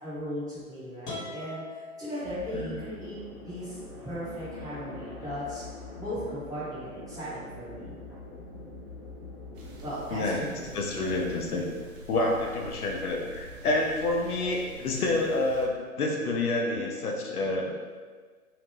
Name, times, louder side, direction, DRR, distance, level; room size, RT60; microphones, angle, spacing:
voice 1, 0.0-3.2 3.4-3.8 4.0-5.6 6.0-8.0 9.8-10.6, equal, 10° right, -13 dB, 0.8 m, -37 dB
sound 1, 1.0-2.9, left 2 dB, 55° left, 1.2 m, -42 dB
sound 2, 2.2-11.3, left 2 dB, 20° left, 0.3 m, -44 dB
sound 3, 9.5-15.7, right 1 dB, 60° right, 0.6 m, -46 dB
voice 2, 10.1-10.5 10.7-11.7 12.1-17.7, left 2 dB, 80° left, 0 dB, 0.6 m, -28 dB
2.8 x 2.1 x 3.0 m, 1.5 s
figure-of-eight pair, 120°, 44 cm